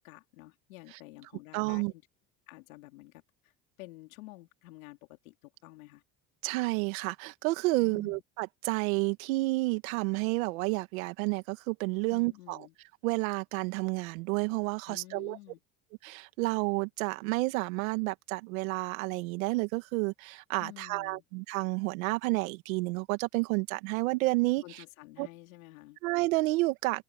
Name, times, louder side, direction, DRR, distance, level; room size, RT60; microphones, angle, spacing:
voice 1, 0.0-2.0 2.5-3.5 3.8-6.0 7.8-8.2 12.1-12.7 14.9-15.6 20.6-21.2 24.6-26.0, left 19 dB, 90° left, 3.8 m, -50 dB
voice 2, 1.5-1.9 6.4-12.6 13.0-15.4 16.0-24.8 25.2-25.3 26.0-27.0, right 24 dB, 85° right, 2.1 m, -30 dB
open air
supercardioid pair, 85°, 40 cm